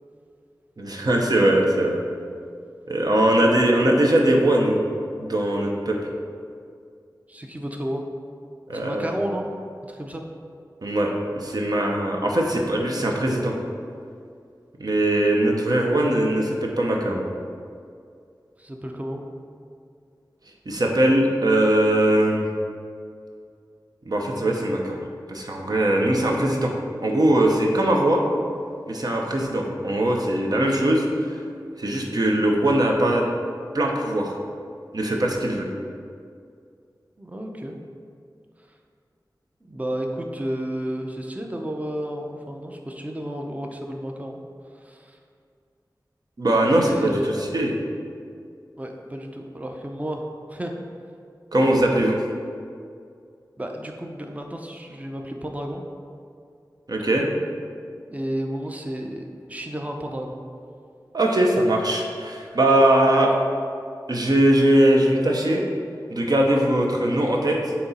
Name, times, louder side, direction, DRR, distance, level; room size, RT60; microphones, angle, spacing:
voice 1, 0.8-2.0 2.9-4.8 5.2-6.0 8.7-9.1 10.8-13.5 14.8-17.3 20.7-22.5 24.1-26.7 27.0-28.2 28.9-31.4 31.8-33.2 33.7-34.3 34.9-35.7 46.4-47.7 51.5-52.2 56.9-57.3 61.1-63.3 64.1-65.6 66.1-67.6, right 1 dB, 60° right, 0 dB, 0.8 m, -21 dB
voice 2, 7.3-8.0 8.7-9.5 9.9-10.2 18.6-19.2 37.2-37.8 39.6-44.4 44.7-45.2 46.7-47.3 48.8-50.7 53.6-55.8 58.1-60.4, equal, 20° right, 2 dB, 0.6 m, -32 dB
7.6 x 3.0 x 4.2 m, 2.3 s
wide cardioid pair, 70°, 8 cm